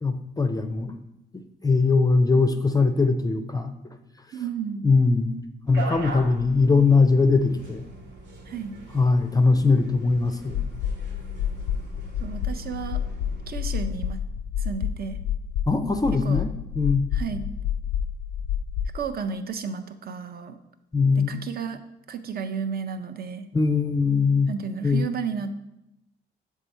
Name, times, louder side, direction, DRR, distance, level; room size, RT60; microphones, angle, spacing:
voice 1, 0.0-0.9 1.3-3.7 4.8-5.4 5.7-7.8 8.9-10.6 15.7-16.5 16.7-17.1 20.9-21.4 23.5-24.5 24.8-25.1, left 4 dB, 20° left, 7 dB, 0.4 m, -21 dB
voice 2, 4.3-4.8 8.5-8.7 12.2-13.0 13.5-14.2 14.6-15.2 16.2-16.4 17.1-17.5 18.9-20.6 21.2-21.8 22.1-23.5 24.5-25.5, right 6 dB, 50° right, 9 dB, 0.6 m, -32 dB
sound 1, 5.7-13.9, right 2 dB, 75° right, 1.3 m, -41 dB
sound 2, 10.5-19.0, left 8 dB, 80° left, 0.4 m, -29 dB
6.7 x 3.6 x 4.2 m, 0.86 s
cardioid pair, 90°, 20 cm